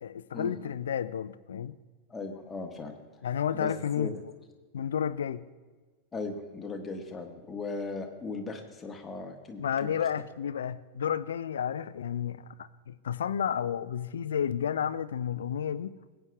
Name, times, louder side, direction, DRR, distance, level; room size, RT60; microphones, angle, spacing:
voice 1, 0.0-1.7 3.2-4.1 4.7-5.4 9.6-15.9, left 8 dB, 65° left, 0.4 m, -31 dB
voice 2, 2.1-3.2 3.5-4.1 6.1-9.9, left 3 dB, 15° left, 1.3 m, -38 dB
20.5 x 9.0 x 2.3 m
figure-of-eight pair, 90°, 0 cm